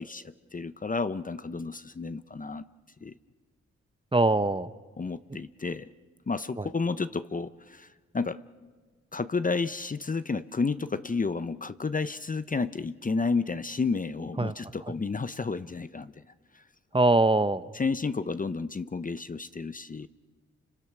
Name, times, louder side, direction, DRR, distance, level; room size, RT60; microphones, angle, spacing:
voice 1, 0.0-2.6 3.0-3.1 5.0-5.9 6.3-8.4 9.1-16.2 16.5-16.6 17.7-20.1, left 4 dB, 25° left, 13 dB, 0.8 m, -31 dB
voice 2, 4.1-4.7 6.6-6.7 14.4-14.5 16.9-17.7, right 2 dB, 15° right, 13 dB, 0.9 m, -23 dB
29.5 x 25.5 x 6.1 m, 1.4 s
supercardioid pair, 50°, 30 cm